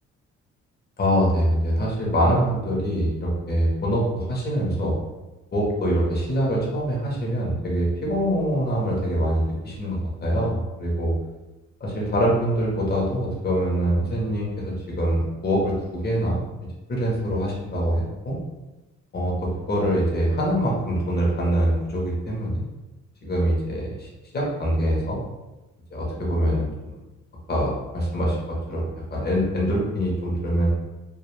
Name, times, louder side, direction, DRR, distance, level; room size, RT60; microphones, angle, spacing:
voice 1, 1.0-4.9 5.5-11.1 11.8-16.4 16.9-18.4 19.1-22.6 23.2-24.1 24.3-25.2 25.9-27.0 27.5-30.7, equal, 35° left, -4 dB, 0.8 m, -24 dB
2.3 x 2.3 x 3.1 m, 1.1 s
cardioid pair, 90°, 30 cm